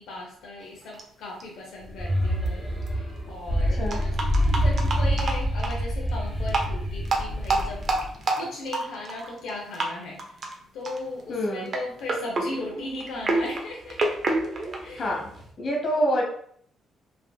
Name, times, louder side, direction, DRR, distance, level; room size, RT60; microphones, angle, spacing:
voice 1, 0.0-4.2 4.6-7.9 8.4-10.5 10.7-14.0 14.8-15.2, left 2 dB, 85° left, -2 dB, 0.6 m, -37 dB
sound 1, 0.9-1.0 1.4-1.5 2.5-2.6 2.8-2.9 3.9-5.8 6.4-6.7 7.1-9.5 9.7-9.9 10.2-10.5 10.9-11.2 11.7-15.5, right 2 dB, 50° right, 0.6 m, -28 dB
sound 2, 1.8-8.2, equal, 20° left, 1.0 m, -26 dB
voice 2, 11.3-11.7 15.0-15.3 15.6-16.2, equal, 50° left, -1 dB, 1.1 m, -26 dB
3.3 x 2.5 x 2.2 m, 0.63 s
cardioid pair, 90°, 0 cm